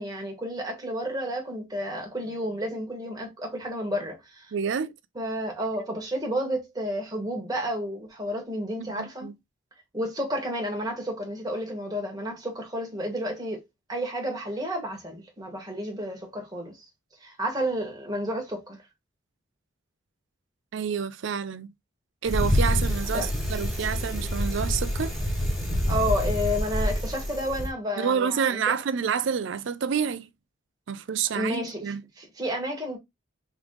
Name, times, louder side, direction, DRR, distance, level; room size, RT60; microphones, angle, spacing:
voice 1, 0.0-4.5 5.1-9.3 9.9-13.6 13.9-16.8 17.2-18.8 23.1-23.3 25.9-28.6 31.3-33.0, equal, 20° right, 1.4 m, -31 dB
voice 2, 4.5-4.9 8.8-9.3 20.7-21.7 22.2-25.1 28.0-30.3 30.9-32.0, right 7 dB, 65° right, 0.4 m, -28 dB
Bicycle, 22.3-27.7, equal, ahead, 1.2 m, -27 dB
3.7 x 3.4 x 3.2 m
head